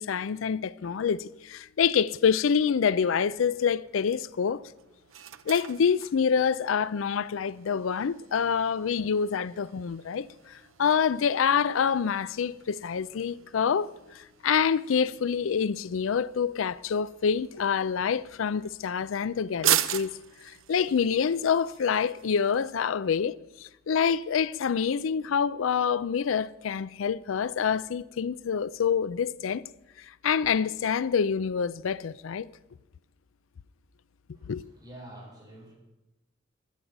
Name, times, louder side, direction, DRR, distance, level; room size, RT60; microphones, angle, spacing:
voice 1, 0.0-4.6 5.5-29.6 30.0-32.5 34.5-34.6, left 6 dB, 85° left, 0.4 m, -27 dB
sound 1, 3.2-22.7, right 12 dB, 90° right, 0.7 m, -39 dB
voice 2, 34.3-35.7, right 1 dB, 20° right, 6.1 m, -47 dB
12.0 x 10.5 x 9.2 m
head